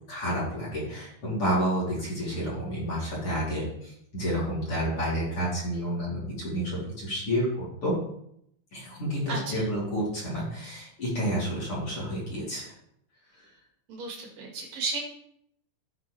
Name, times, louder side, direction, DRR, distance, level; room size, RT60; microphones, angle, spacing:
voice 1, 0.1-8.0 8.7-12.6 13.4-13.5, equal, 35° left, -7 dB, 3.3 m, -30 dB
voice 2, 9.3-9.7 13.9-15.0, right 4 dB, 60° right, 0 dB, 1.9 m, -34 dB
15.0 x 5.2 x 3.2 m, 0.74 s
omnidirectional pair, 5.2 m